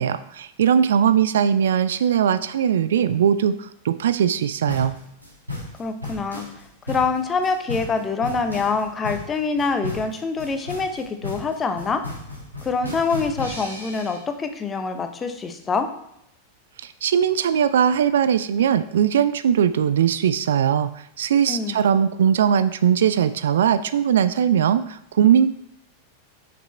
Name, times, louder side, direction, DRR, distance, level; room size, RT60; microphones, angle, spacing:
voice 1, 0.0-5.0 16.8-25.5, right 8 dB, 60° right, 13 dB, 0.3 m, -20 dB
sound 1, 4.7-14.2, left 2 dB, 90° right, 2.4 m, -34 dB
voice 2, 5.8-6.4 6.9-12.0 12.6-15.9 21.5-21.8, left 4 dB, 20° left, 7 dB, 0.8 m, -25 dB
6.0 x 5.9 x 4.2 m, 0.75 s
figure-of-eight pair, 90°, 0 cm